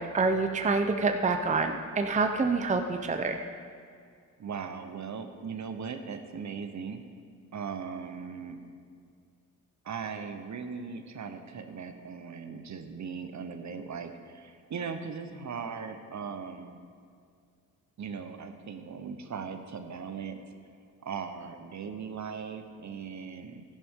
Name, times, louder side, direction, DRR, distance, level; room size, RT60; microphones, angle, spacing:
voice 1, 0.0-3.4, right 4 dB, 20° right, 6 dB, 0.7 m, -27 dB
voice 2, 4.4-7.0 7.5-8.6 9.8-16.8 18.0-20.5 21.0-23.6, right 6 dB, 55° right, 7 dB, 0.9 m, -39 dB
13.5 x 11.0 x 3.7 m, 2.2 s
cardioid pair, 85°, 35 cm